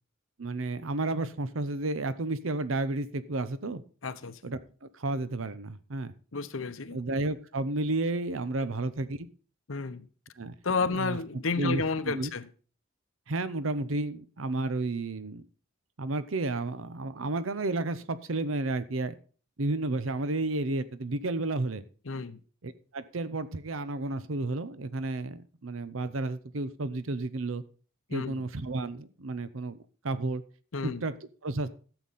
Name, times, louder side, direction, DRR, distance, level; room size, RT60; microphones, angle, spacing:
voice 1, 0.4-3.8 4.4-6.1 6.9-9.3 10.3-10.5 10.9-11.2 11.6-12.3 13.3-15.5 16.0-19.1 19.6-21.8 22.6-27.6 28.1-30.4 30.8-31.1 31.4-31.7, right 2 dB, 80° right, 0.8 m, -32 dB
voice 2, 4.0-4.4 6.3-7.0 9.7-10.1 10.6-12.5 22.1-22.4 28.1-28.4 30.7-31.0, left 4 dB, 80° left, 0.9 m, -31 dB
13.0 x 8.1 x 4.2 m
head